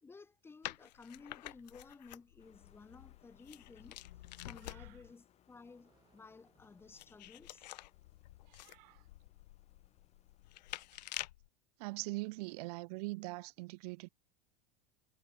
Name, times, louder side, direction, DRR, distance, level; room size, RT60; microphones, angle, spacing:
voice 1, 0.0-4.0 4.4-7.7, left 4 dB, 10° left, 1.1 m, -56 dB
sound 1, 0.6-5.1 6.6-11.5, left 16 dB, 90° left, 1.3 m, -49 dB
sound 2, 1.4-8.9, right 7 dB, 20° right, 3.6 m, -77 dB
sound 3, 2.4-11.2, left 11 dB, 30° left, 2.8 m, -70 dB
voice 2, 8.5-9.0 11.8-14.1, right 23 dB, 70° right, 0.7 m, -42 dB
supercardioid pair, 145°, 21 cm